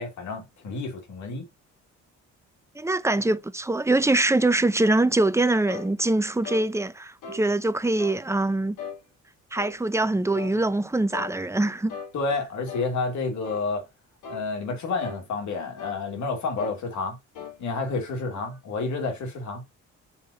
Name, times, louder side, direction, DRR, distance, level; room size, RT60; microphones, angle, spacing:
voice 1, 0.0-1.5 12.1-13.9 14.3-17.2 17.6-19.6, left 3 dB, 70° left, 2.7 m, -30 dB
voice 2, 2.8-8.8 9.5-12.0, right 2 dB, 10° right, 0.6 m, -23 dB
sound 1, 5.7-5.9 6.4-6.7 7.2-7.5 8.0-8.2 8.8-9.0 9.6-9.8 10.3-10.6 11.1-11.3 11.9-12.1 12.7-12.9 13.4-13.7 14.2-14.5 15.0-15.2 15.8-16.0 16.6-16.8 17.3-17.6, left 6 dB, 90° left, 1.6 m, -38 dB
5.7 x 3.3 x 5.3 m
cardioid pair, 90°, 30 cm